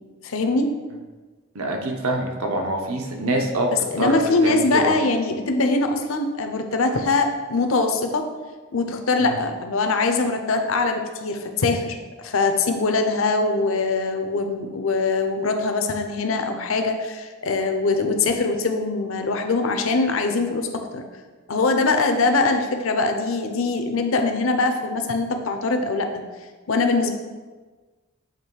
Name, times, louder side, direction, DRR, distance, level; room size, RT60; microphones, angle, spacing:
voice 1, 0.2-0.8 3.7-8.2 8.7-21.0 21.5-26.1 26.7-27.1, left 3 dB, 70° left, 5 dB, 0.6 m, -22 dB
voice 2, 1.5-3.7 4.0-4.9 9.2-9.3, right 1 dB, 85° right, 2 dB, 0.9 m, -25 dB
7.4 x 3.0 x 4.6 m, 1.3 s
head